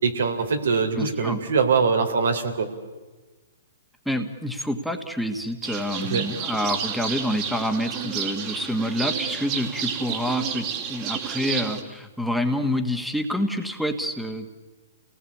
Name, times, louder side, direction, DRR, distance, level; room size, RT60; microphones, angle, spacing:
voice 1, 0.0-2.7 6.0-6.3, right 5 dB, 80° right, 6 dB, 3.5 m, -23 dB
voice 2, 1.0-1.4 4.0-14.5, left 1 dB, ahead, 6 dB, 1.6 m, -27 dB
sound 1, 5.6-11.8, right 8 dB, 35° right, 2.6 m, -31 dB
28.5 x 19.0 x 8.6 m, 1.3 s
hypercardioid pair, 140°, 0 cm